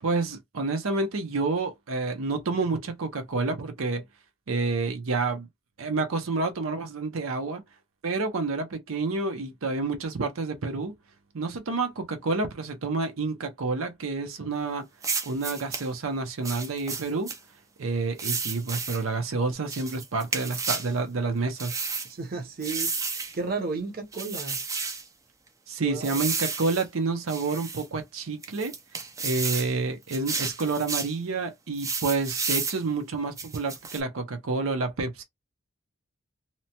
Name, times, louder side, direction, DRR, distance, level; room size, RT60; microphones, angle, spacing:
voice 1, 0.0-4.0 4.5-5.5 5.8-7.6 8.0-10.9 11.3-14.9 15.2-17.3 17.8-21.8 25.7-28.7 29.2-35.2, right 3 dB, 85° right, 0.6 m, -29 dB
sound 1, 15.0-15.9 16.4-17.4 18.2-19.0 19.7-20.9 21.6-22.1 22.6-23.3 24.1-25.0 26.0-26.8 27.3-27.9 28.4-29.7 30.1-31.1 31.8-32.8 33.4-34.0, right 4 dB, 15° right, 0.3 m, -32 dB
voice 2, 22.1-23.0 23.3-24.6 25.8-26.2, right 4 dB, 45° right, 0.7 m, -33 dB
2.8 x 2.1 x 2.8 m
head